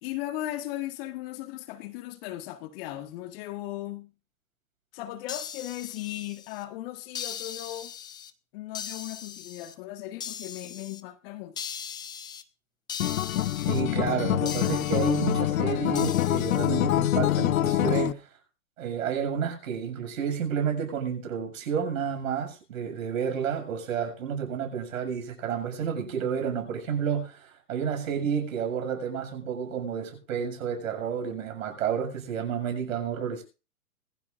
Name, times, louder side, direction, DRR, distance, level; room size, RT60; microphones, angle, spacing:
voice 1, 0.0-4.1 4.9-7.9 8.5-11.5, left 14 dB, 40° left, 1.7 m, -37 dB
sound 1, 5.3-6.6 7.1-8.3 8.7-9.7 10.2-11.0 11.6-12.4 12.9-13.8 14.5-15.4 15.9-16.7, left 8 dB, 10° left, 0.6 m, -39 dB
Acoustic guitar, 13.0-18.1, left 13 dB, 60° left, 0.7 m, -25 dB
voice 2, 13.7-18.3 18.8-33.4, right 7 dB, 60° right, 7.2 m, -30 dB
22.5 x 15.0 x 2.6 m
hypercardioid pair, 125°, 45 cm